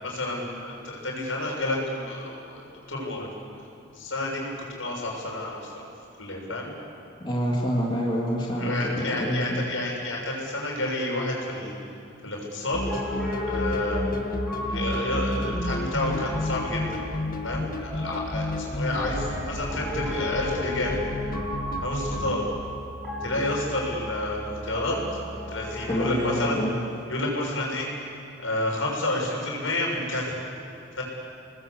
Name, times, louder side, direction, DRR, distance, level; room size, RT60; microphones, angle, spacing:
voice 1, 0.0-3.3 3.9-4.5 4.8-5.7 6.2-6.7 8.6-11.7 12.2-12.8 13.4-14.0 14.7-17.0 17.4-20.9 21.8-22.4 23.2-25.0 25.5-26.6 27.1-27.9 28.4-30.4 31.0-31.1, left 1 dB, 75° left, -1 dB, 6.9 m, -30 dB
voice 2, 7.2-9.6 25.9-26.7, equal, 25° left, -4 dB, 2.8 m, -27 dB
sound 1, 12.7-22.3, left 1 dB, 45° left, 1.8 m, -32 dB
Piano, 12.8-26.5, left 2 dB, ahead, 6.4 m, -34 dB
29.0 x 20.0 x 8.3 m, 2.6 s
head